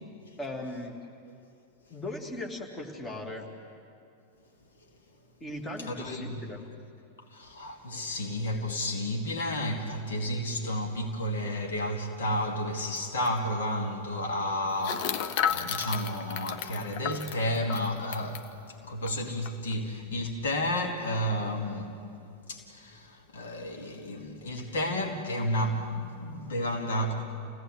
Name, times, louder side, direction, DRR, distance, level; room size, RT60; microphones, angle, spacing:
voice 1, 0.4-0.9 1.9-3.5 5.4-6.6, left 1 dB, 20° left, 2.7 m, -38 dB
voice 2, 5.9-6.5 7.3-22.0 22.5-27.1, left 1 dB, 65° left, 2.4 m, -32 dB
sound 1, 13.0-13.1 13.2-13.4 14.8-18.5 19.1-19.2 19.4-19.7, left 8 dB, 45° left, 0.9 m, -33 dB
28.5 x 17.0 x 7.9 m
figure-of-eight pair, 90°, 0 cm